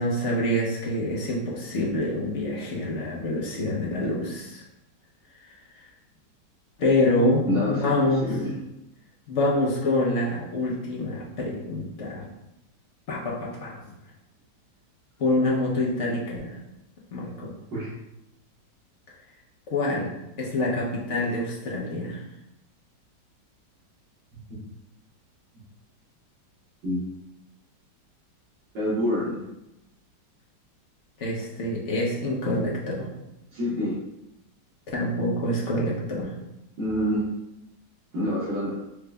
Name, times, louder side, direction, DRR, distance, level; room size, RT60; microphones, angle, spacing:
voice 1, 0.0-4.6 5.4-5.9 6.8-8.3 9.3-12.3 13.1-13.9 15.2-16.6 17.1-17.6 19.7-20.1 20.4-22.2 31.2-33.1 34.9-36.3, left 1 dB, 50° left, -4 dB, 1.0 m, -26 dB
voice 2, 7.5-7.9 8.2-8.5 17.7-17.9 24.6-24.7 26.8-27.0 28.7-29.4 33.5-34.0 36.8-37.3 38.1-38.7, equal, 80° right, -11 dB, 2.0 m, -26 dB
4.7 x 2.4 x 3.3 m, 0.88 s
omnidirectional pair, 1.9 m